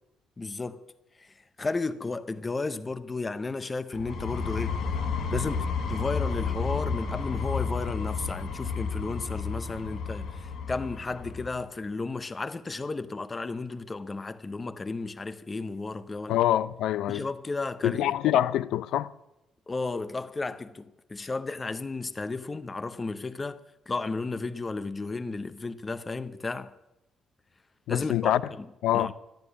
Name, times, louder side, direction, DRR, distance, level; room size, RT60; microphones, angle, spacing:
voice 1, 0.4-0.8 1.2-1.3 1.6-4.8 5.3-16.4 17.1-18.1 19.7-26.7 27.9-28.6 28.9-29.1, left 3 dB, 15° left, 0.6 m, -33 dB
sound 1, 3.9-11.6, left 5 dB, 55° left, 1.5 m, -31 dB
voice 2, 16.3-17.3 17.8-19.1 27.9-28.4 28.8-29.1, left 12 dB, 70° left, 0.6 m, -25 dB
12.5 x 12.0 x 9.5 m
cardioid pair, 175°, 0 cm